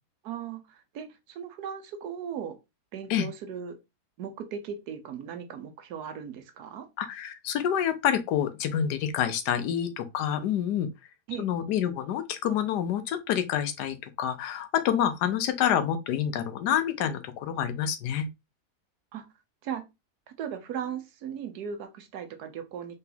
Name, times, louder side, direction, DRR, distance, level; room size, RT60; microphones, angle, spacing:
voice 1, 0.2-2.6 2.9-3.8 4.2-6.9 11.3-11.5 19.1-19.2 19.6-19.8 20.3-23.0, right 8 dB, 75° right, 1.3 m, -37 dB
voice 2, 7.0-10.9 11.4-18.3, left 9 dB, 90° left, 1.3 m, -27 dB
3.9 x 3.9 x 2.7 m
omnidirectional pair, 1.7 m